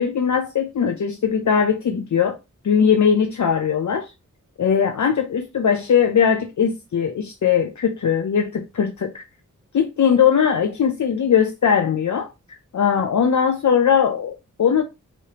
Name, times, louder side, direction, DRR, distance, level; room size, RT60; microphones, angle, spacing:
voice 1, 0.0-2.4 2.6-4.1 4.6-9.2 9.7-14.8, left 7 dB, 65° left, 0.6 m, -20 dB
4.8 x 3.2 x 2.9 m
wide cardioid pair, 55°, 32 cm